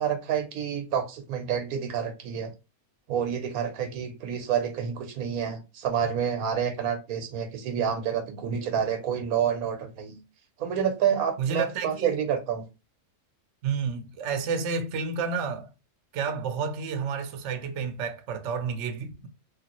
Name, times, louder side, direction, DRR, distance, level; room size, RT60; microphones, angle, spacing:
voice 1, 0.0-2.5 3.1-10.2 10.6-12.7, right 8 dB, 85° right, 1.2 m, -28 dB
voice 2, 11.4-12.2 13.6-15.7 16.1-19.3, right 5 dB, 65° right, 0.8 m, -30 dB
3.1 x 2.4 x 2.9 m
omnidirectional pair, 1.5 m